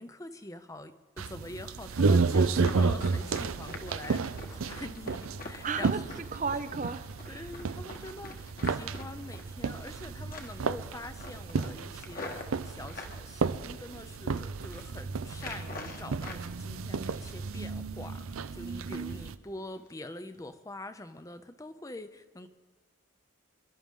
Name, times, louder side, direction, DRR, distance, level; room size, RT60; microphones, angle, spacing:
voice 1, 0.0-6.0 7.3-22.5, left 2 dB, 15° left, 10 dB, 0.5 m, -45 dB
sound 1, 1.2-19.4, right 4 dB, 90° right, 0.5 m, -32 dB
Run, 2.6-10.0 10.3-10.7 11.0-13.2 13.7-14.3 14.6-14.9 15.3-16.4 16.8-17.6 17.9-18.1 18.5-18.8 19.2-19.3 19.8-19.9 20.3-20.4, left 2 dB, 45° left, 1.4 m, -45 dB
voice 2, 5.6-6.1 6.3-7.5, right 5 dB, 35° right, 11 dB, 0.5 m, -34 dB
27.0 x 11.5 x 3.7 m, 1.4 s
head